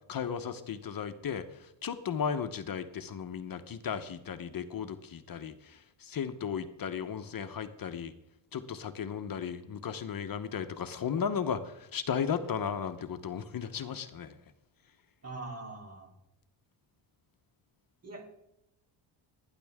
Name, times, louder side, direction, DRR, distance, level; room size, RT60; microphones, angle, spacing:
voice 1, 0.1-8.1 8.5-14.3, left 7 dB, 45° left, 9 dB, 0.9 m, -35 dB
voice 2, 15.2-16.1 18.0-18.3, right 2 dB, 30° right, 2 dB, 3.4 m, -42 dB
18.5 x 10.0 x 3.6 m, 0.86 s
cardioid pair, 110°, 48 cm